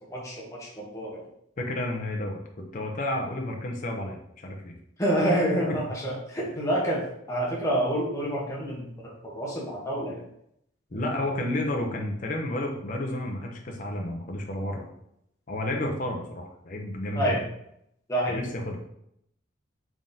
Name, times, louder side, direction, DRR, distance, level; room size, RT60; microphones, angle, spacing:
voice 1, 0.1-1.2 5.0-10.2 17.1-17.4 18.1-18.4, right 1 dB, 15° left, -4 dB, 0.9 m, -28 dB
voice 2, 1.6-4.7 5.7-5.8 10.9-14.9 15.5-17.4 18.3-18.8, left 1 dB, 40° left, 1 dB, 0.6 m, -31 dB
3.6 x 3.6 x 2.7 m, 0.75 s
head